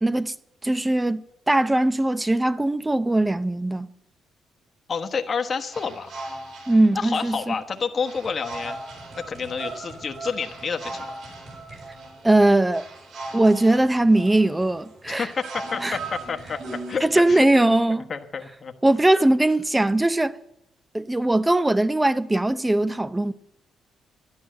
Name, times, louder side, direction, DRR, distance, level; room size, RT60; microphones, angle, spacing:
voice 1, 0.0-0.3 0.6-3.9 6.7-7.6 12.2-12.8 13.3-15.3 15.8-16.0 17.0-18.1 18.8-20.3 20.9-23.3, right 1 dB, 10° right, 0.7 m, -20 dB
voice 2, 4.9-6.1 6.9-8.8 9.1-11.1 15.1-17.5 17.9-18.7, left 5 dB, 40° left, 1.2 m, -29 dB
sound 1, 5.7-17.3, right 2 dB, 65° right, 7.1 m, -38 dB
12.0 x 11.5 x 7.6 m
cardioid pair, 90°, 0 cm